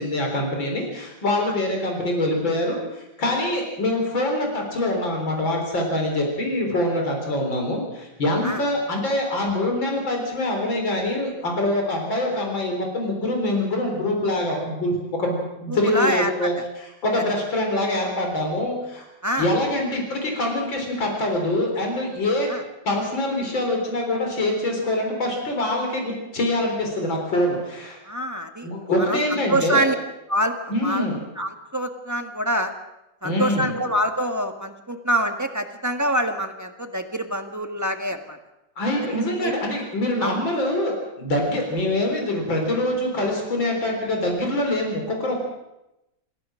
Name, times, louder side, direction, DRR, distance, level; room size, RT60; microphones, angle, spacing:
voice 1, 0.0-19.0 19.4-22.5 22.8-28.0 28.6-29.9 30.7-31.2 33.2-33.7 38.8-45.4, left 1 dB, 90° left, 1 dB, 4.7 m, -24 dB
voice 2, 15.7-16.6 19.2-19.5 22.5-22.6 28.0-28.7 29.1-29.9 30.3-31.1 31.4-32.7 33.2-38.4 39.4-39.5 40.2-40.4, right 1 dB, 10° right, 5 dB, 1.4 m, -25 dB
27.0 x 15.5 x 6.3 m, 0.92 s
omnidirectional pair, 2.0 m